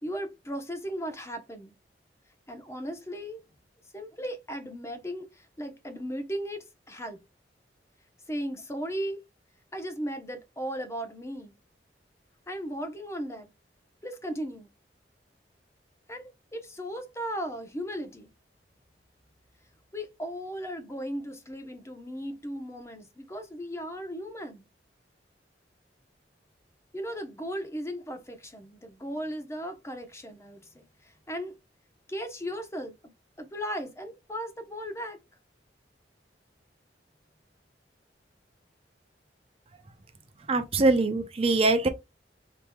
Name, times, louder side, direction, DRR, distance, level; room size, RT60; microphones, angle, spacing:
voice 1, 0.0-1.7 2.5-3.4 3.9-7.2 8.3-9.2 9.7-11.5 12.5-13.5 14.0-14.7 16.1-18.3 19.9-24.6 26.9-30.9 31.3-31.5 32.1-33.1 33.4-35.2, equal, 15° left, 0.8 m, -36 dB
voice 2, 40.5-41.9, right 2 dB, 35° right, 0.6 m, -23 dB
5.2 x 3.0 x 2.2 m
head